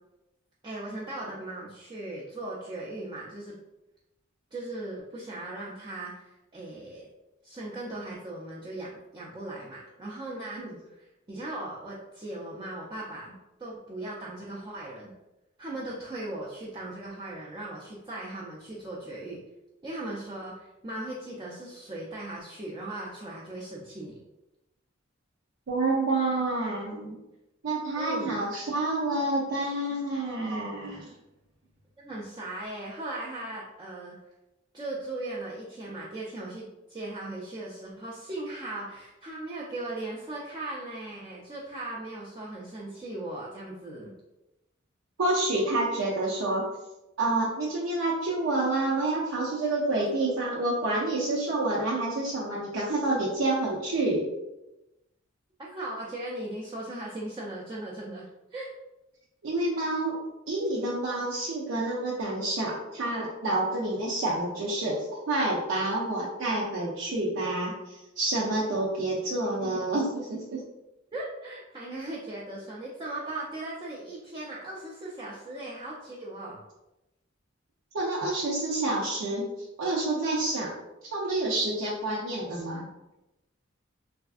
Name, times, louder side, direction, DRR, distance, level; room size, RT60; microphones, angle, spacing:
voice 1, 0.6-3.6 4.5-7.1 7.4-10.6 11.0-13.3 13.6-15.1 15.6-19.4 19.8-24.2 28.0-28.4 32.0-34.2 34.7-44.1 55.6-58.7 69.6-69.8 71.1-76.6, right 2 dB, 20° right, -6 dB, 0.4 m, -38 dB
voice 2, 25.7-27.1 27.6-31.1 45.2-46.6 47.2-54.3 59.4-60.2 60.5-70.6 77.9-79.5 79.8-80.7 81.1-82.9, right 2 dB, 85° right, -4 dB, 0.5 m, -28 dB
3.3 x 2.4 x 2.4 m, 0.96 s
head